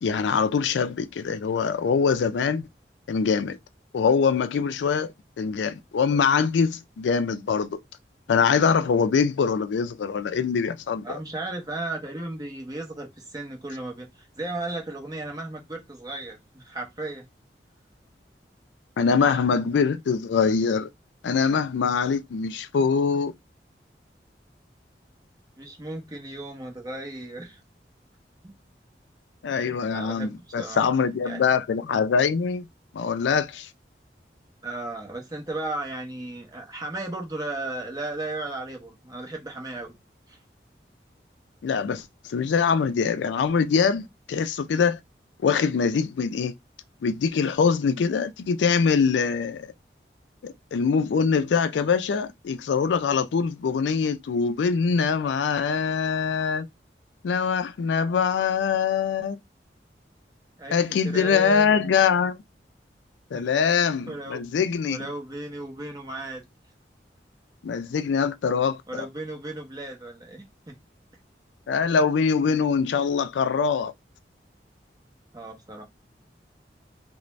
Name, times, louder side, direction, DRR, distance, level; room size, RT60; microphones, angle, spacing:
voice 1, 0.0-2.7 3.1-3.6 3.9-7.8 8.3-11.2 19.0-20.9 21.2-23.3 29.4-32.7 32.9-33.7 41.6-45.0 45.4-46.5 47.0-49.7 50.4-56.7 57.2-59.4 60.7-62.4 63.3-65.1 67.6-69.1 71.7-73.9, left 6 dB, 90° left, 0.4 m, -23 dB
voice 2, 11.0-17.3 25.6-27.6 28.4-28.5 29.9-30.8 31.3-31.4 34.6-40.0 40.3-40.4 60.6-61.9 63.3-63.5 64.1-66.4 68.9-70.8 75.3-75.8, right 2 dB, 20° right, 0.8 m, -35 dB
2.5 x 2.1 x 3.1 m
head